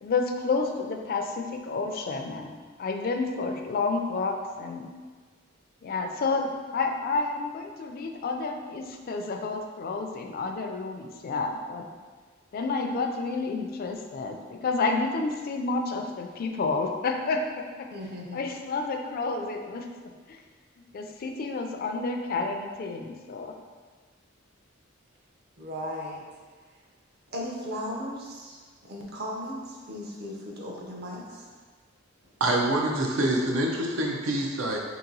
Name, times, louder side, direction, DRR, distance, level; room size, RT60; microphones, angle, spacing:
voice 1, 0.0-4.9 5.8-11.9 12.5-17.9 18.3-20.4 20.9-23.5, left 3 dB, 50° left, 4 dB, 0.3 m, -30 dB
voice 2, 17.9-18.5 25.6-26.2 27.3-31.5, equal, 55° right, -2 dB, 0.7 m, -37 dB
voice 3, 32.4-34.8, right 1 dB, 85° right, 0 dB, 0.6 m, -26 dB
2.9 x 2.9 x 3.9 m, 1.5 s
head